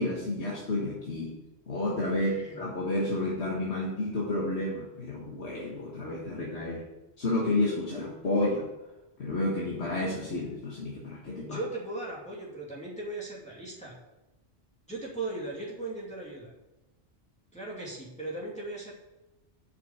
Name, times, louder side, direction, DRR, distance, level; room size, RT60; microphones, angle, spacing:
voice 1, 0.0-1.3 1.7-6.8 7.2-8.7 9.2-11.6, left 2 dB, 85° left, -4 dB, 1.9 m, -30 dB
voice 2, 2.2-2.6 11.4-14.0 14.9-16.5 17.5-18.9, right 2 dB, 5° left, -5 dB, 2.6 m, -38 dB
7.9 x 6.0 x 7.3 m, 0.99 s
omnidirectional pair, 1.1 m